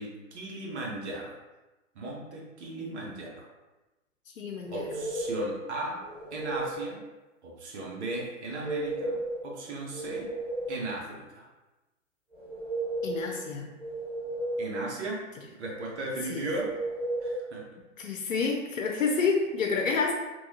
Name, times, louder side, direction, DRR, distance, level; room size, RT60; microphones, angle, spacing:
voice 1, 0.0-1.3 1.9-3.5 4.7-6.0 6.3-7.0 7.4-9.2 9.4-10.3 10.7-11.5 14.6-15.2 15.6-16.7 17.2-17.6, right 2 dB, 60° right, -2 dB, 0.9 m, -36 dB
voice 2, 4.4-5.0 13.0-13.7 16.3-16.5 18.0-20.1, left 4 dB, 85° left, 1 dB, 0.5 m, -29 dB
sound 1, 4.6-5.5 6.0-6.8 8.4-9.4 9.8-10.9 12.3-13.3 13.8-14.8 16.4-17.4, right 2 dB, 5° right, 0.4 m, -34 dB
3.1 x 2.3 x 2.7 m, 1.1 s
figure-of-eight pair, 110°, 39 cm